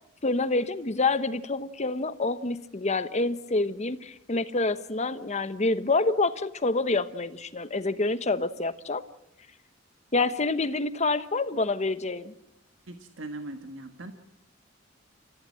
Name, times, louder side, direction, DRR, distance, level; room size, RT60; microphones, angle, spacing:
voice 1, 0.2-9.0 10.1-12.3, left 3 dB, 35° left, 12 dB, 1.1 m, -27 dB
voice 2, 12.9-14.1, right 2 dB, 85° right, 6 dB, 1.7 m, -40 dB
30.0 x 15.5 x 7.7 m, 0.84 s
head